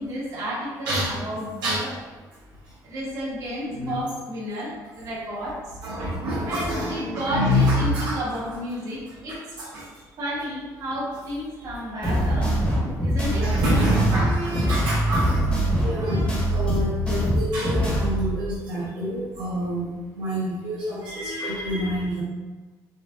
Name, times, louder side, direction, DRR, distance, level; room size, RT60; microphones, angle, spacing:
voice 1, 0.0-1.9 2.8-5.6 6.5-9.6 10.2-12.6 13.0-13.5, equal, 55° right, -6 dB, 1.4 m, -31 dB
voice 2, 3.6-4.0 5.8-8.4 9.1-9.8 12.3-12.9 13.3-15.5 15.8-22.2, equal, 75° right, -8 dB, 1.0 m, -27 dB
sound 1, 12.0-18.3, equal, 15° left, 1.1 m, -23 dB
4.2 x 2.3 x 3.6 m, 1.3 s
cardioid pair, 155°, 7 cm